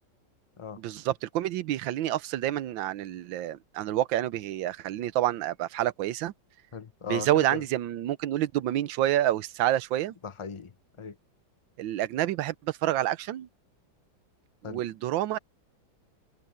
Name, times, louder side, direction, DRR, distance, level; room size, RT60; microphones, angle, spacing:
voice 1, 0.8-6.3 7.1-10.1 11.8-13.5 14.6-15.4, right 13 dB, 80° right, 1.5 m, -28 dB
voice 2, 6.7-7.6 10.2-11.2 14.6-14.8, left 5 dB, 30° left, 0.5 m, -38 dB
omnidirectional pair, 2.1 m